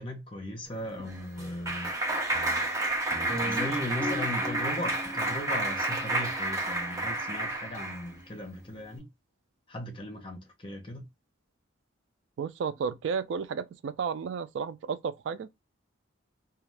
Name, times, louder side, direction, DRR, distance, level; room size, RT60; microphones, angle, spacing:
voice 1, 0.0-1.9 3.4-9.1 9.7-11.0, equal, 25° left, 0.8 m, -37 dB
Clapping, 0.8-8.1, right 1 dB, 15° right, 0.6 m, -30 dB
voice 2, 12.4-15.5, right 6 dB, 70° right, 0.3 m, -32 dB
2.4 x 2.3 x 3.2 m
head